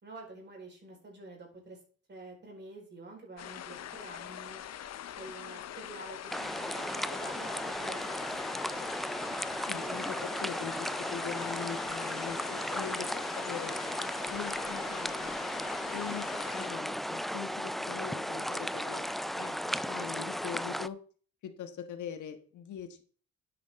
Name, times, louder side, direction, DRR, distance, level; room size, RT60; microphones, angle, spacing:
voice 1, 0.0-1.8 2.1-4.6 5.2-8.6 9.7-10.2 18.2-18.5, right 2 dB, 35° right, 0 dB, 4.5 m, -48 dB
sound 1, 3.4-16.7, left 10 dB, 60° left, 0.8 m, -43 dB
sound 2, 6.3-20.9, equal, ahead, 0.3 m, -35 dB
voice 2, 9.7-13.8 14.3-15.4 15.9-19.0 19.3-21.0 21.4-23.0, left 8 dB, 75° left, 8 dB, 1.5 m, -42 dB
10.0 x 8.5 x 3.7 m, 0.43 s
cardioid pair, 90°, 30 cm